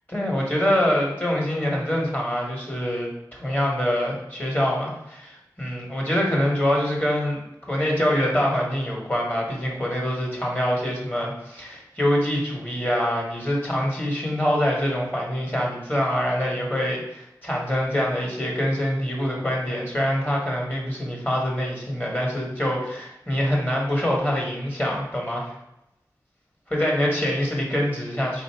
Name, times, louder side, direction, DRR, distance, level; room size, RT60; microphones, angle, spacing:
voice 1, 0.1-7.4 7.7-25.5 26.7-28.4, equal, 25° left, -2 dB, 1.2 m, -25 dB
3.7 x 2.6 x 4.5 m, 0.88 s
wide cardioid pair, 50°, 7 cm